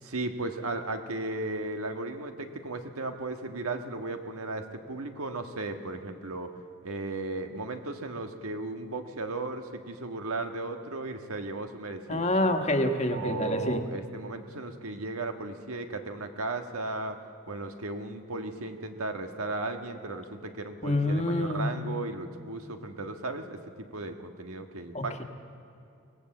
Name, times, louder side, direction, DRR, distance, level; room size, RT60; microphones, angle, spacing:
voice 1, 0.0-6.5 6.8-12.6 13.1-17.2 17.5-25.2, right 2 dB, 85° right, 6 dB, 1.5 m, -35 dB
voice 2, 12.1-13.8 20.8-21.7 24.9-25.2, left 1 dB, 30° left, 5 dB, 1.5 m, -27 dB
24.0 x 18.5 x 7.8 m, 2.6 s
head